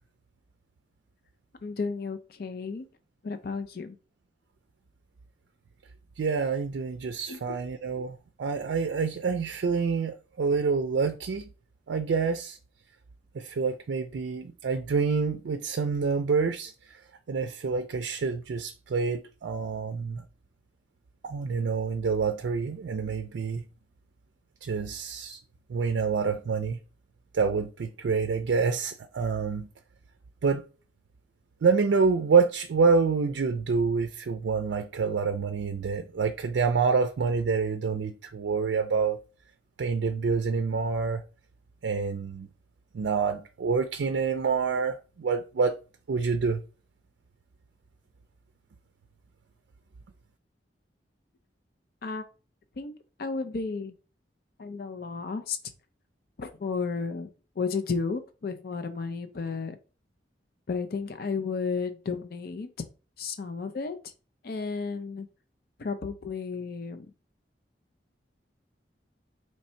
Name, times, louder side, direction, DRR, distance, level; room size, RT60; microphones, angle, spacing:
voice 1, 1.6-2.9 3.2-4.0 7.3-7.6 52.0-52.2 52.8-52.9 53.2-53.9 54.6-55.6 56.4-57.3 57.6-59.8 60.7-62.7 63.2-64.0 64.4-65.3 65.8-67.1, left 4 dB, 55° left, 0.5 m, -33 dB
voice 2, 6.2-11.5 11.9-12.6 13.3-16.7 17.3-20.2 21.2-23.6 24.6-25.4 25.7-26.8 27.3-29.7 30.4-30.6 31.6-39.2 39.8-41.2 41.8-42.5 42.9-45.8 46.1-46.6, right 5 dB, 80° right, 0.4 m, -27 dB
3.2 x 2.7 x 4.3 m
head